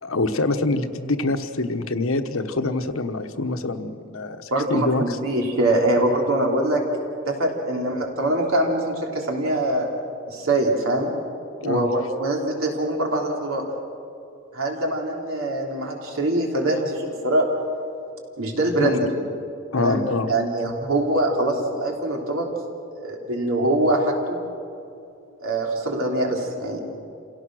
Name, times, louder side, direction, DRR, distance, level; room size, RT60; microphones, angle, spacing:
voice 1, 0.0-5.2 11.6-11.9 18.8-18.9 19.7-20.3, left 2 dB, 75° left, 7 dB, 1.2 m, -25 dB
voice 2, 4.5-6.8 7.3-9.9 10.3-11.1 11.6-13.6 14.5-17.5 18.4-19.1 19.8-22.5 22.9-24.4 25.4-26.8, right 1 dB, 75° right, 0 dB, 3.5 m, -23 dB
28.0 x 17.0 x 6.4 m, 2.6 s
head